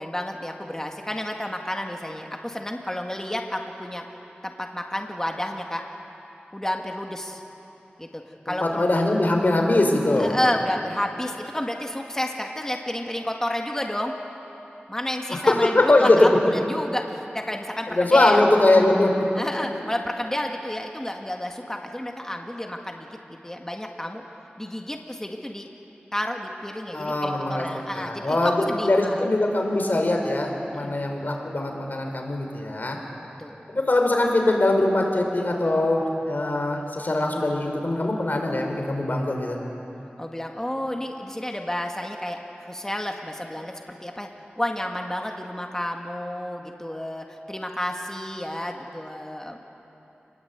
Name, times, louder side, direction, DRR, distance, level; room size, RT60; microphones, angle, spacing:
voice 1, 0.0-4.0 4.4-5.8 6.5-7.4 8.0-8.9 10.2-14.1 14.9-18.4 19.4-23.1 23.4-24.2 24.6-25.7 26.1-29.3 30.7-31.0 33.4-33.6 40.2-43.7 44.0-44.3 44.6-49.6, left 1 dB, 15° left, 2 dB, 1.9 m, -30 dB
voice 2, 8.5-10.3 15.3-16.4 17.9-19.1 26.9-27.7 27.9-33.0 33.7-39.6, left 2 dB, 55° left, 2 dB, 4.0 m, -22 dB
27.5 x 20.5 x 8.2 m, 3.0 s
wide cardioid pair, 75°, 4 cm